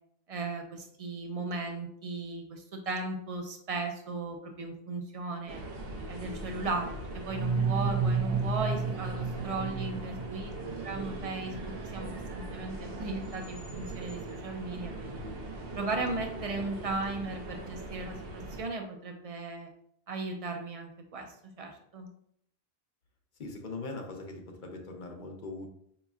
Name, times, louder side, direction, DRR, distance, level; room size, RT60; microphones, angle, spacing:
voice 1, 0.3-5.6 6.1-10.5 10.8-15.2 15.7-19.7 20.1-22.1, right 3 dB, 45° right, 3 dB, 0.5 m, -36 dB
sound 1, 5.5-18.6, right 2 dB, 70° right, 0.8 m, -40 dB
sound 2, 7.3-11.0, right 5 dB, 85° right, 1.1 m, -31 dB
voice 2, 9.8-10.3 23.4-25.7, left 3 dB, 55° left, 2 dB, 0.8 m, -41 dB
5.1 x 3.0 x 2.3 m, 0.68 s
omnidirectional pair, 1.1 m